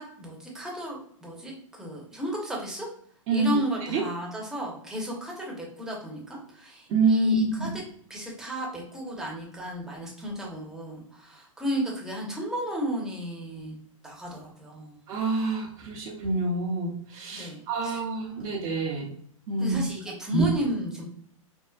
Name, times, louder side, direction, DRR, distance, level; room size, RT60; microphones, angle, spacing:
voice 1, 0.0-2.9 3.3-7.8 8.1-13.8 14.0-15.0 17.3-18.0 19.6-21.0, equal, 5° right, -3 dB, 0.9 m, -34 dB
voice 2, 6.9-7.7 15.1-19.1 19.5-19.8 20.3-20.5, right 3 dB, 35° right, -6 dB, 0.8 m, -26 dB
4.5 x 2.1 x 2.3 m, 0.64 s
hypercardioid pair, 135°, 17 cm